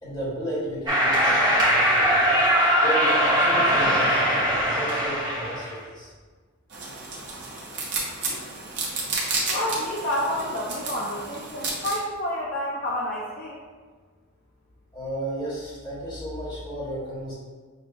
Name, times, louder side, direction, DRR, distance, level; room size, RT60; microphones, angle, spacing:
voice 1, 0.0-2.3 2.8-6.1 14.9-17.3, right 1 dB, 20° left, -9 dB, 1.4 m, -33 dB
sound 1, 0.9-5.7, equal, 20° right, 0.8 m, -21 dB
Mouse eating cracker, 6.7-12.0, right 3 dB, 55° right, 0.8 m, -31 dB
voice 2, 9.5-13.6, left 1 dB, 45° left, -5 dB, 0.4 m, -29 dB
6.3 x 2.3 x 2.5 m, 1.5 s
head